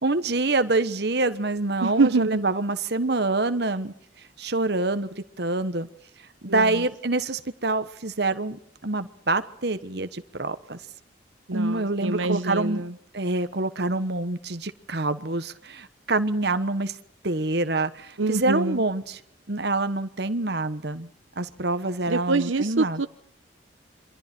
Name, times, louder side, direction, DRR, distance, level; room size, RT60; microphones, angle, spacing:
voice 1, 0.0-3.9 4.4-5.9 6.4-10.8 11.5-12.8 13.1-16.9 17.2-19.2 19.5-21.1 21.4-23.0, right 2 dB, 55° right, 1.2 m, -26 dB
voice 2, 1.8-2.5 6.5-6.8 11.5-12.9 18.2-18.8 22.1-23.1, right 3 dB, 80° right, 0.9 m, -25 dB
28.0 x 24.5 x 4.5 m
head